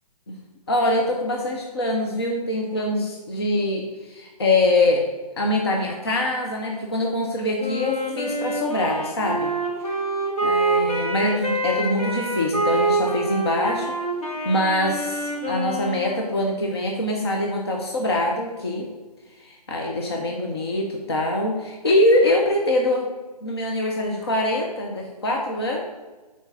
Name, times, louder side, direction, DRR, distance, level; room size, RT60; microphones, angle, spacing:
voice 1, 0.7-5.0 5.4-9.5 10.4-14.0 14.4-18.9 19.4-23.1 23.4-25.8, left 1 dB, 40° left, 0 dB, 0.8 m, -24 dB
Wind instrument woodwind instrument, 7.6-16.4, right 2 dB, 60° left, 2.2 m, -26 dB
5.8 x 4.6 x 5.7 m, 1.2 s
hypercardioid pair, 180°, 21 cm